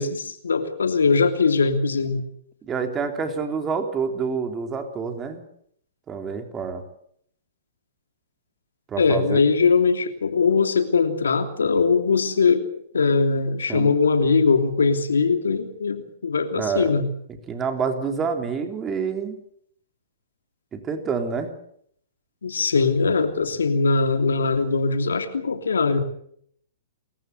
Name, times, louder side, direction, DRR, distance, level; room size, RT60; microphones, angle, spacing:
voice 1, 0.0-2.2 9.0-12.7 12.9-17.1 22.4-26.0, left 4 dB, 85° left, 7 dB, 3.0 m, -21 dB
voice 2, 2.6-5.4 6.1-6.8 8.9-9.5 13.7-13.9 16.6-16.9 17.5-19.4 20.7-21.5, right 5 dB, 20° right, 5 dB, 3.3 m, -27 dB
28.0 x 15.0 x 8.1 m, 0.67 s
hypercardioid pair, 120°, 0 cm